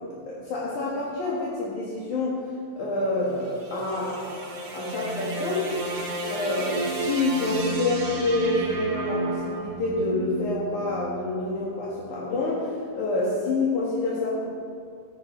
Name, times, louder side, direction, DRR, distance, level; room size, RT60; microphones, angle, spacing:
voice 1, 0.3-2.4 2.8-4.4 4.7-5.7 6.3-14.4, left 2 dB, 60° left, -6 dB, 2.2 m, -27 dB
sound 1, 3.2-11.5, right 2 dB, 60° right, 1.8 m, -32 dB
15.5 x 12.5 x 4.5 m, 2.3 s
omnidirectional pair, 5.8 m